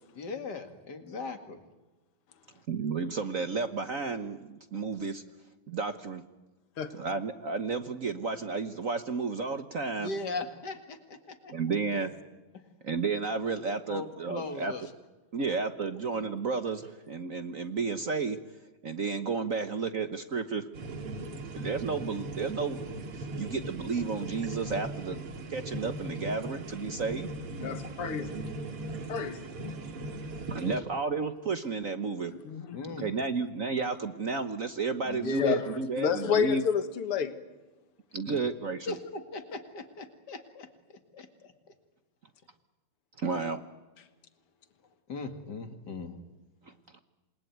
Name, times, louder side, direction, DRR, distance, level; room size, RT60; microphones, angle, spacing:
voice 1, 0.1-1.6 10.0-11.5 11.9-12.1 13.9-14.9 28.7-29.2 30.5-30.8 32.7-33.1 35.0-35.6 38.3-38.4 38.9-41.5 45.1-46.2, left 3 dB, 50° left, 7 dB, 2.6 m, -38 dB
voice 2, 2.7-5.2 5.7-6.2 6.9-10.1 11.5-12.1 12.8-14.7 15.3-18.4 18.8-20.6 21.5-22.8 23.1-25.2 25.5-27.3 30.5-32.3 33.0-36.7 38.1-38.9 43.2-43.6 46.9-47.0, right 4 dB, 45° right, 9 dB, 1.2 m, -32 dB
sound 1, 20.7-30.8, right 1 dB, 90° right, 3.1 m, -39 dB
voice 3, 27.6-28.4 29.1-29.5 32.3-32.8 35.3-35.6 36.0-37.3, left 7 dB, 85° left, 10 dB, 2.4 m, -30 dB
28.0 x 20.5 x 9.4 m, 1.2 s
omnidirectional pair, 2.4 m